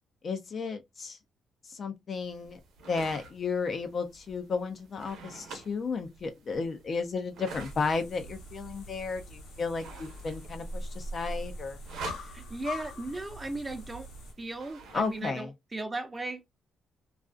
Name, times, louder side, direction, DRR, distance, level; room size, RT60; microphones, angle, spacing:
voice 1, 0.2-1.2 1.7-11.8 14.9-15.5, left 4 dB, 45° left, 0.5 m, -33 dB
sound 1, 2.1-15.3, right 4 dB, 80° right, 0.8 m, -49 dB
sound 2, 7.5-14.3, left 1 dB, 85° left, 0.8 m, -42 dB
voice 2, 12.1-14.1 14.4-16.5, right 2 dB, 20° right, 0.7 m, -37 dB
2.4 x 2.3 x 2.3 m
cardioid pair, 90°, 0 cm